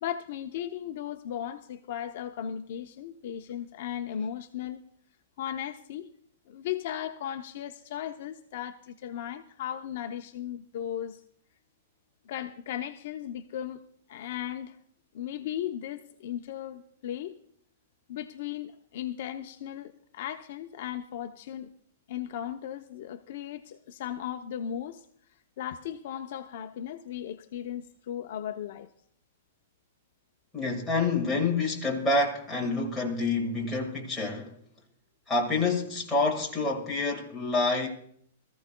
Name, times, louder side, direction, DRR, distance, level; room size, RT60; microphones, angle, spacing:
voice 1, 0.0-4.8 5.4-6.1 6.5-11.2 12.3-13.8 14.1-14.8 15.1-17.4 18.1-21.7 22.1-25.1 25.6-28.9, left 10 dB, 45° left, 0.6 m, -36 dB
voice 2, 30.5-34.6 35.3-37.9, left 3 dB, ahead, 1.8 m, -27 dB
22.0 x 14.5 x 2.2 m
hypercardioid pair, 180°, 0 cm